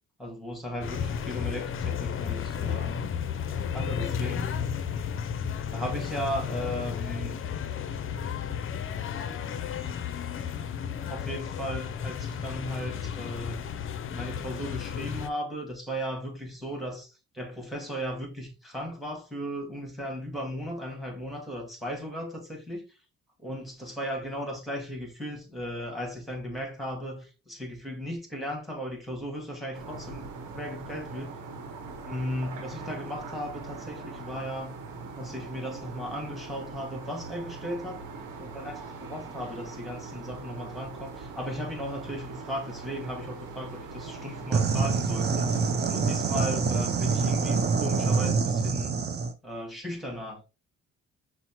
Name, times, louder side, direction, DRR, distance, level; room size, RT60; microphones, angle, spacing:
voice 1, 0.2-3.1 3.7-4.5 5.7-7.4 11.1-13.6 14.1-22.9 23.4-31.3 32.0-34.8 35.2-38.0 38.4-45.6 45.9-49.0 49.4-50.4, equal, ahead, 1.7 m, -36 dB
sound 1, 0.8-15.3, left 7 dB, 45° left, 0.5 m, -33 dB
sound 2, 29.7-48.3, right 4 dB, 85° right, 0.9 m, -41 dB
sound 3, 44.5-49.3, right 5 dB, 35° right, 0.6 m, -26 dB
5.6 x 2.1 x 2.9 m
cardioid pair, 90°, 30 cm